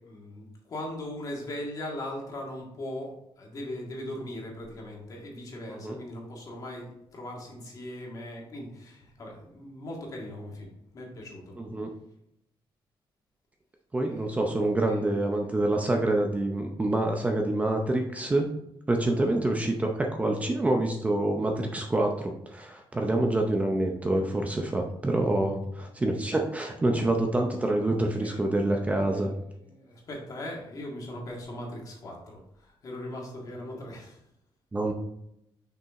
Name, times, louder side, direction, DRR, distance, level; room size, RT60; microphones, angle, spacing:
voice 1, 0.0-11.6 14.1-14.5 14.9-15.4 19.1-19.3 28.2-29.3 29.6-34.2, left 1 dB, 40° left, -1 dB, 2.0 m, -40 dB
voice 2, 11.6-11.9 13.9-18.5 18.9-29.3 34.7-34.9, right 2 dB, 15° right, 2 dB, 0.6 m, -27 dB
6.2 x 5.4 x 3.6 m, 0.80 s
wide cardioid pair, 165°, 9 cm